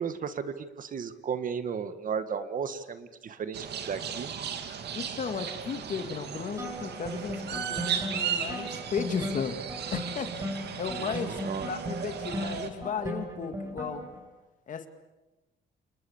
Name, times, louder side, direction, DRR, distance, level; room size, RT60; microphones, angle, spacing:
voice 1, 0.0-4.3 11.0-11.7, right 6 dB, 45° right, 11 dB, 1.6 m, -34 dB
sound 1, 3.5-12.7, right 8 dB, 65° right, 2.7 m, -36 dB
voice 2, 4.9-9.6 9.9-10.4 10.8-14.0 14.7-14.9, left 6 dB, 45° left, 9 dB, 2.2 m, -35 dB
sound 2, 6.6-14.2, equal, 15° right, 6.7 m, -37 dB
29.0 x 28.5 x 7.2 m, 1.1 s
cardioid pair, 160°, 19 cm